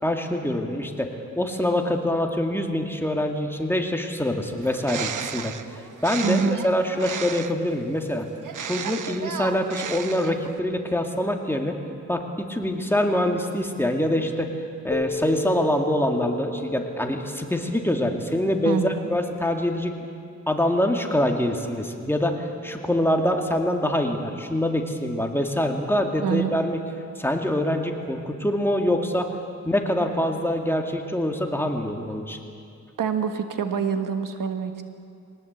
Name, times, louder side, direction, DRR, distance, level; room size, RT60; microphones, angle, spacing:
voice 1, 0.0-8.3 8.6-11.8 12.1-14.5 14.8-19.9 20.5-26.8 27.2-29.3 29.6-32.4, left 1 dB, 5° left, 2 dB, 2.3 m, -25 dB
Bird, 4.6-7.7 8.4-10.6, right 7 dB, 70° right, 1.0 m, -34 dB
voice 2, 6.2-6.6 18.6-19.1 26.2-26.5 33.0-34.8, right 6 dB, 90° right, 7 dB, 1.5 m, -26 dB
Keyboard (musical), 14.9-18.1, left 1 dB, 30° left, 1.1 m, -33 dB
22.5 x 18.5 x 8.2 m, 2.4 s
wide cardioid pair, 80°, 32 cm